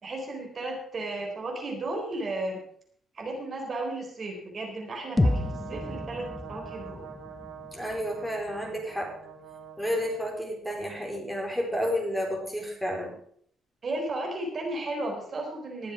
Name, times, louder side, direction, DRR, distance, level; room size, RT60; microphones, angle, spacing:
voice 1, 0.0-2.6 3.1-7.1 13.8-15.9, right 2 dB, 45° right, 2 dB, 4.0 m, -34 dB
Brass instrument, 5.0-10.2, right 7 dB, 85° right, 2.6 m, -44 dB
sound 1, 5.2-9.1, left 2 dB, 15° left, 1.0 m, -31 dB
voice 2, 7.7-9.2 9.8-13.2, equal, ahead, 0 dB, 4.3 m, -31 dB
20.0 x 7.3 x 5.0 m, 0.63 s
cardioid pair, 90°, 0 cm